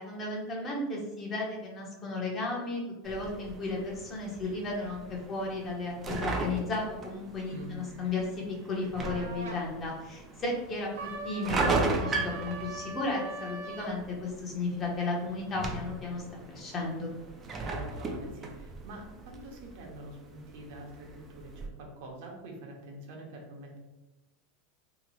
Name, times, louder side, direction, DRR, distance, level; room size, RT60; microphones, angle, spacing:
voice 1, 0.0-16.2 16.5-17.1, left 3 dB, 20° left, -2 dB, 0.7 m, -34 dB
sound 1, 3.0-21.7, right 3 dB, 20° right, 0.4 m, -37 dB
voice 2, 7.5-7.8 17.6-23.8, right 1 dB, 60° right, 0 dB, 0.8 m, -45 dB
sound 2, 9.0-9.6 10.9-14.0, right 3 dB, 90° right, 0.4 m, -41 dB
2.9 x 2.0 x 3.9 m, 1.0 s
supercardioid pair, 160°, 0 cm